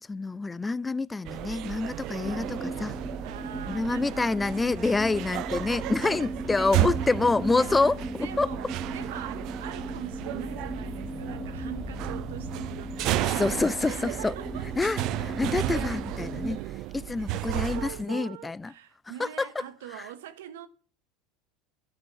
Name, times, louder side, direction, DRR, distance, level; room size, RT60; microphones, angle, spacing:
voice 1, 0.0-3.0 3.7-8.5 13.2-14.4 14.8-18.7 19.2-19.6 19.9-20.1, left 3 dB, 15° left, 0.4 m, -27 dB
sound 1, 1.2-18.0, right 14 dB, 60° right, 0.7 m, -33 dB
sound 2, 2.2-16.6, right 1 dB, 5° right, 1.2 m, -38 dB
voice 2, 3.2-4.4 5.0-5.1 6.0-6.3 6.5-6.9 7.5-14.6 16.1-16.2 17.5-20.7, right 11 dB, 80° right, 1.2 m, -43 dB
sound 3, 10.2-15.1, left 8 dB, 40° left, 1.4 m, -48 dB
12.0 x 5.3 x 8.2 m
hypercardioid pair, 85°, 0 cm